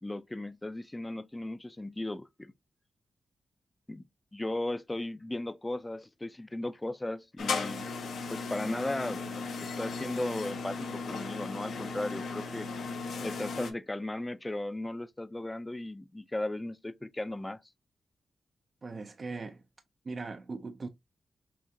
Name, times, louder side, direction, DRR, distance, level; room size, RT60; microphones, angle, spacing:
voice 1, 0.0-2.5 3.9-4.0 4.3-7.9 8.3-9.2 9.6-12.7 13.2-17.6, left 1 dB, 15° left, 0.4 m, -36 dB
sound 1, 7.4-13.7, left 4 dB, 90° left, 0.9 m, -36 dB
voice 2, 18.8-19.6 20.0-20.9, right 3 dB, 45° right, 0.4 m, -39 dB
5.8 x 2.4 x 2.6 m
cardioid pair, 85°, 0 cm